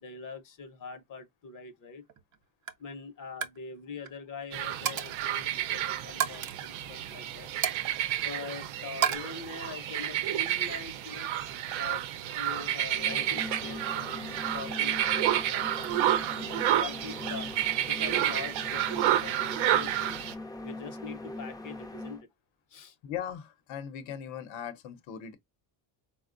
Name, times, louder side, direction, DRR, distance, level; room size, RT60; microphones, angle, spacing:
voice 1, 0.0-2.0 2.8-7.5 8.2-11.3 11.8-17.5 17.9-20.2 20.6-22.2 22.7-23.0, left 5 dB, 45° left, 0.7 m, -43 dB
Coin (dropping), 2.1-2.4 2.7-2.9 3.2-3.6 3.9-4.1 4.9-5.3 6.2-6.5 7.6-8.5 9.0-9.2, right 9 dB, 40° right, 0.6 m, -32 dB
sound 1, 4.5-20.3, right 12 dB, 80° right, 0.7 m, -30 dB
sound 2, 12.9-22.2, left 2 dB, 10° left, 0.4 m, -41 dB
voice 2, 23.0-25.4, left 9 dB, 75° left, 0.8 m, -39 dB
4.2 x 2.1 x 2.4 m
cardioid pair, 125°, 47 cm